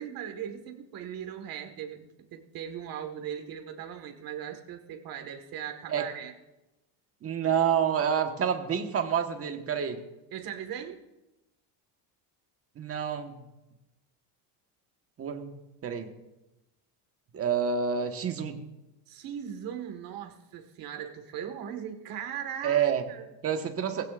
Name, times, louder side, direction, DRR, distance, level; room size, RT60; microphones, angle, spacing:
voice 1, 0.0-6.3 10.3-11.0 19.1-23.3, right 9 dB, 50° right, 6 dB, 1.8 m, -39 dB
voice 2, 7.2-10.0 12.8-13.4 15.2-15.5 15.8-16.1 17.3-18.7 22.6-23.0 23.4-24.0, right 7 dB, 30° right, 5 dB, 1.4 m, -28 dB
19.5 x 16.0 x 2.5 m, 0.99 s
cardioid pair, 140°, 45 cm